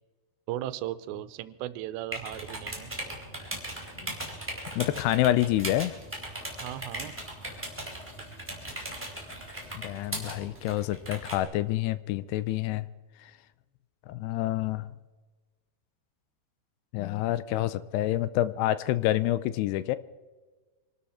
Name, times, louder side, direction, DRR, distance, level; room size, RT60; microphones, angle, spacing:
voice 1, 0.5-2.9 6.6-7.1, right 14 dB, 85° right, 14 dB, 2.9 m, -36 dB
sound 1, 2.1-11.4, right 1 dB, 5° right, 3.3 m, -39 dB
voice 2, 4.8-6.0 9.7-12.9 13.2-13.3 14.1-14.9 16.9-20.0, left 14 dB, 80° left, 15 dB, 2.6 m, -27 dB
sound 2, 5.4-10.4, left 2 dB, 30° left, 6.1 m, -55 dB
25.5 x 12.5 x 4.3 m, 1.3 s
omnidirectional pair, 4.9 m